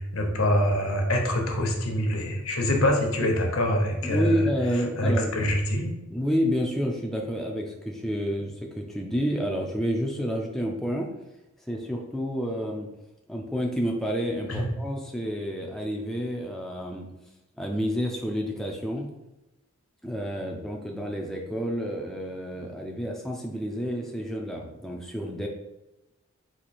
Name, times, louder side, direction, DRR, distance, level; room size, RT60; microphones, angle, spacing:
voice 1, 0.0-4.4 5.0-6.0 14.5-14.7, left 1 dB, 75° left, 2 dB, 0.9 m, -25 dB
voice 2, 4.0-5.4 6.1-11.1 11.7-12.9 13.3-17.1 17.6-19.1 20.0-25.5, equal, ahead, 0 dB, 0.3 m, -29 dB
4.3 x 2.7 x 4.2 m, 0.97 s
head